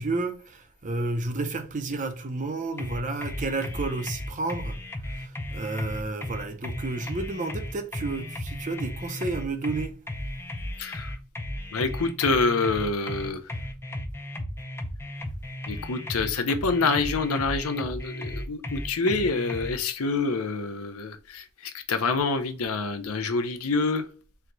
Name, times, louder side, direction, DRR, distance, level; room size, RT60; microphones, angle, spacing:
voice 1, 0.0-10.0, right 3 dB, 35° right, 0.6 m, -31 dB
sound 1, 2.8-19.7, left 1 dB, 10° left, 0.5 m, -35 dB
voice 2, 10.8-11.1 11.7-13.4 15.7-24.0, left 3 dB, 90° left, 0.7 m, -27 dB
4.5 x 2.3 x 3.8 m
head